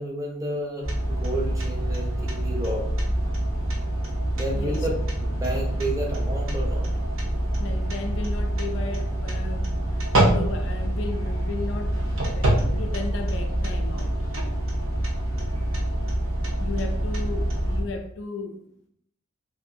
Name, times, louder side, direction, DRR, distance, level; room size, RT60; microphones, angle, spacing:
voice 1, 0.0-2.9 4.3-6.9, right 1 dB, 15° right, 0.5 m, -31 dB
sound 1, 0.8-17.8, right 1 dB, 85° right, 0.7 m, -26 dB
voice 2, 4.5-4.9 7.6-14.2 16.6-18.7, left 3 dB, 60° left, 0.3 m, -35 dB
2.6 x 2.4 x 2.6 m
head